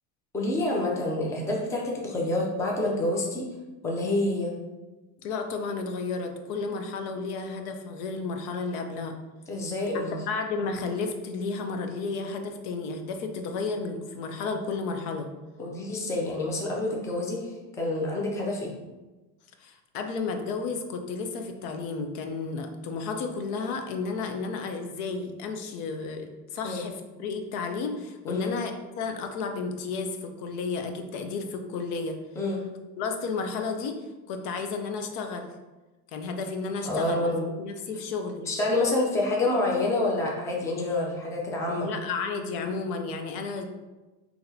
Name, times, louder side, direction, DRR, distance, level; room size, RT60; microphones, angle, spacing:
voice 1, 0.3-3.4 3.8-4.5 9.5-10.2 15.6-18.7 26.6-26.8 28.3-28.5 32.4-32.6 36.8-37.4 38.5-41.9, left 2 dB, 5° left, -2 dB, 0.4 m, -27 dB
voice 2, 5.2-9.2 10.3-15.3 19.6-32.2 33.0-35.5 36.1-38.5 41.8-43.7, left 4 dB, 85° left, 5 dB, 0.7 m, -32 dB
5.8 x 2.8 x 2.7 m, 1.2 s
cardioid pair, 150°, 44 cm